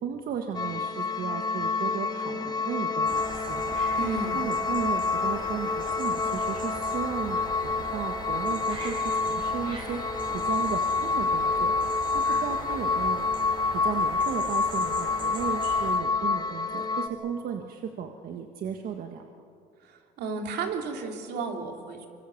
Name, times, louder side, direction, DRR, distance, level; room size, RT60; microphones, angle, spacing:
voice 1, 0.0-3.8 4.3-9.0 9.3-10.0 10.3-11.7 12.1-13.3 13.7-19.3, right 7 dB, 60° right, 4 dB, 1.6 m, -35 dB
sound 1, 0.5-17.1, left 4 dB, 25° left, 1.6 m, -28 dB
sound 2, 3.1-16.0, right 2 dB, 30° right, 5.1 m, -40 dB
voice 2, 4.0-4.4 19.8-22.1, right 4 dB, 80° right, 3 dB, 3.3 m, -33 dB
25.0 x 24.5 x 7.2 m, 2.3 s
cardioid pair, 110°, 17 cm